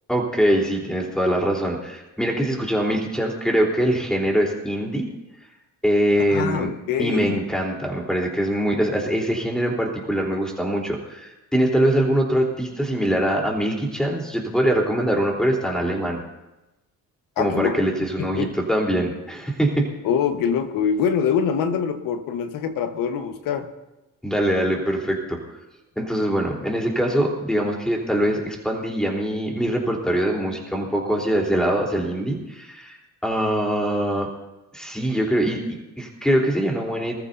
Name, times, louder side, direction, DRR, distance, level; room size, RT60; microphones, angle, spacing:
voice 1, 0.1-5.1 5.8-16.2 17.4-19.9 24.2-25.4 25.9-33.0 33.2-34.3 34.7-37.2, right 1 dB, ahead, -1 dB, 3.8 m, -23 dB
voice 2, 6.3-7.4 17.4-17.8 18.2-18.5 20.0-23.7, left 7 dB, 85° left, 8 dB, 1.4 m, -24 dB
25.0 x 14.5 x 2.8 m, 1.0 s
cardioid pair, 100°, 33 cm